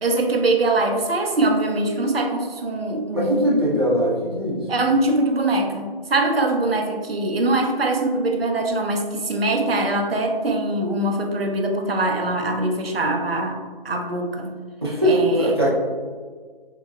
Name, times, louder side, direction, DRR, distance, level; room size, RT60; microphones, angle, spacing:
voice 1, 0.0-3.4 4.7-14.5 15.0-15.7, right 2 dB, 90° right, 3 dB, 0.6 m, -22 dB
voice 2, 3.1-4.7 14.8-15.7, equal, 25° right, -7 dB, 0.5 m, -20 dB
3.8 x 2.8 x 2.2 m, 1.5 s
figure-of-eight pair, 170°, 29 cm